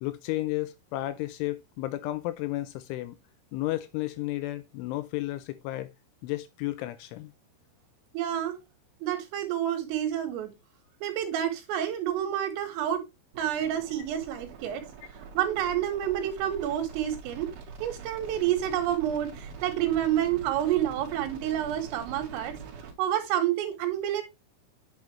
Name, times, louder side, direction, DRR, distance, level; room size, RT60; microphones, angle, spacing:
voice 1, 0.0-3.2 3.5-5.9 6.2-7.3, left 17 dB, 80° left, 2.9 m, -33 dB
voice 2, 8.1-8.5 9.0-10.5 11.0-13.0 13.4-14.9 15.3-17.5 17.8-22.6 23.0-24.2, right 11 dB, 80° right, 4.3 m, -29 dB
sound 1, 13.3-22.9, right 5 dB, 60° right, 3.0 m, -44 dB
8.9 x 6.4 x 3.2 m
omnidirectional pair, 5.9 m